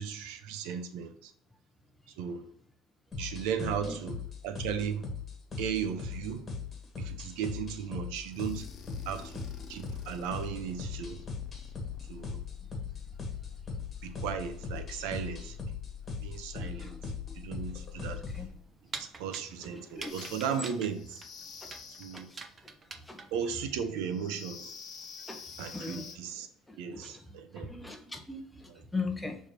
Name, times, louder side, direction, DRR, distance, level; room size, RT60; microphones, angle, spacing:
voice 1, 0.0-1.3 2.2-2.4 3.2-5.0 5.6-6.5 7.0-8.7 9.1-9.4 9.7-11.2 12.1-12.4 14.0-15.6 16.1-16.9 17.4-18.2 19.0-21.2 22.0-22.3 23.3-24.7 25.6-26.5 26.8-27.7 28.7-28.8, right 7 dB, 85° right, 0.8 m, -36 dB
sound 1, 3.1-18.5, left 5 dB, 25° left, 1.6 m, -40 dB
voice 2, 3.6-4.0 16.8-16.9 18.1-18.5 20.0-20.1 22.1-22.2 23.1-23.2 25.3-25.4 25.7-26.1 27.0-27.1 27.6-28.4 28.9-29.4, left 3 dB, 5° left, 0.8 m, -38 dB
sound 2, 8.3-18.7 20.0-22.4 24.0-26.2, left 8 dB, 50° left, 1.0 m, -47 dB
sound 3, 18.3-23.5, right 4 dB, 25° right, 0.6 m, -45 dB
6.4 x 3.4 x 4.4 m
cardioid pair, 125°, 0 cm